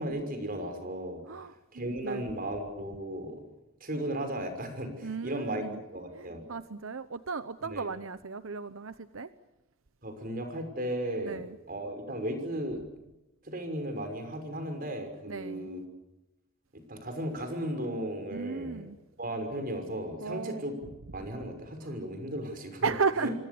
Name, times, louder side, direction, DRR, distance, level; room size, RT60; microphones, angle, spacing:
voice 1, 0.0-1.2 1.7-3.4 3.8-5.6 5.9-6.4 7.7-7.8 10.0-11.4 11.7-12.8 13.4-15.8 16.7-18.8 19.2-20.8 21.1-22.9 23.2-23.4, right 1 dB, 45° right, 7 dB, 6.0 m, -35 dB
voice 2, 1.3-2.2 5.0-5.8 6.2-9.3 11.2-11.6 15.3-15.7 18.3-19.0 20.2-20.7 22.8-23.3, right 5 dB, 90° right, 12 dB, 0.9 m, -34 dB
27.5 x 25.0 x 7.0 m, 0.95 s
head